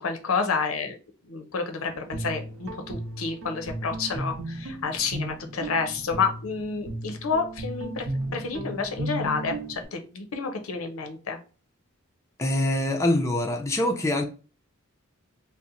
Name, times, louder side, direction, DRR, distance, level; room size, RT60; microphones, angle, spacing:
voice 1, 0.0-1.0 1.3-8.0 8.3-11.4, left 5 dB, 90° left, 0.6 m, -29 dB
Guitar, 1.9-9.9, right 1 dB, 85° right, 0.7 m, -35 dB
voice 2, 12.4-14.2, left 1 dB, 15° left, 0.4 m, -24 dB
2.8 x 2.0 x 3.7 m
head